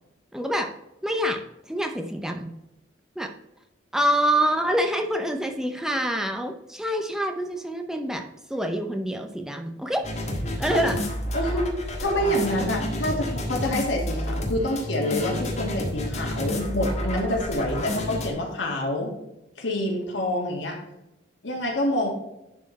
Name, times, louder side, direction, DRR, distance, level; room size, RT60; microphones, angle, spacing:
voice 1, 0.3-0.7 1.0-1.4 1.7-2.5 3.2-3.3 3.9-10.0 10.6-11.0, equal, 5° right, 4 dB, 0.6 m, -26 dB
sound 1, 10.0-18.3, left 1 dB, 40° left, 1.7 m, -30 dB
voice 2, 11.3-11.7 12.0-19.1 19.6-20.8 21.4-22.1, left 1 dB, 80° left, 0 dB, 2.2 m, -27 dB
11.0 x 4.3 x 4.2 m, 0.90 s
head